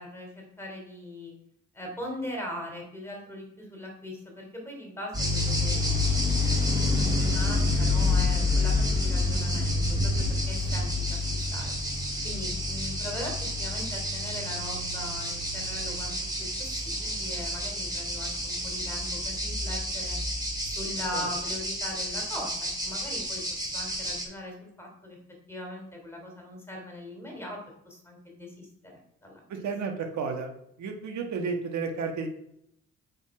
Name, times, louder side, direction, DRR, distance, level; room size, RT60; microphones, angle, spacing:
voice 1, 0.0-1.3 1.7-11.2 11.5-11.8 12.2-13.3 13.6-20.2 20.6-25.2 25.5-27.6 27.8-29.7, left 1 dB, 10° left, 0 dB, 3.1 m, -40 dB
sound 1, 5.1-24.2, left 2 dB, 15° right, 2.9 m, -28 dB
voice 2, 29.5-30.5 30.8-32.3, right 5 dB, 70° right, 4 dB, 1.4 m, -32 dB
8.0 x 5.4 x 4.8 m, 0.75 s
cardioid pair, 90°, 30 cm